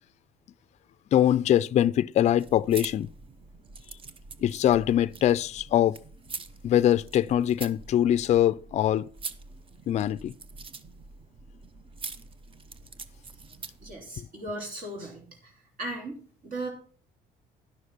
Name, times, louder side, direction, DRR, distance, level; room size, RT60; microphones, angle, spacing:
voice 1, 1.1-3.1 4.4-6.0 6.6-9.1 9.9-10.3, left 11 dB, 40° left, 0.4 m, -23 dB
sound 1, 2.3-14.0, right 4 dB, 30° right, 0.8 m, -44 dB
voice 2, 13.8-15.5 15.8-16.7, right 2 dB, 55° right, 3.1 m, -37 dB
11.5 x 6.4 x 5.5 m
cardioid pair, 110°, 17 cm